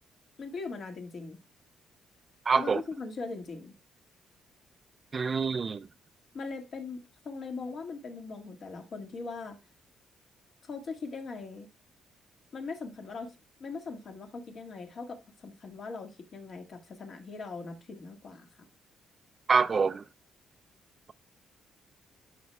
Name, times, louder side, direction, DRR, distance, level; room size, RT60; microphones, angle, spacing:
voice 1, 0.4-1.4 2.5-3.7 6.3-9.6 10.6-11.7 12.5-18.6, left 4 dB, 55° left, 1.7 m, -40 dB
voice 2, 2.5-2.8 5.1-5.8 19.5-20.0, right 5 dB, 40° right, 0.3 m, -25 dB
11.0 x 6.4 x 2.2 m
cardioid pair, 90°, 0 cm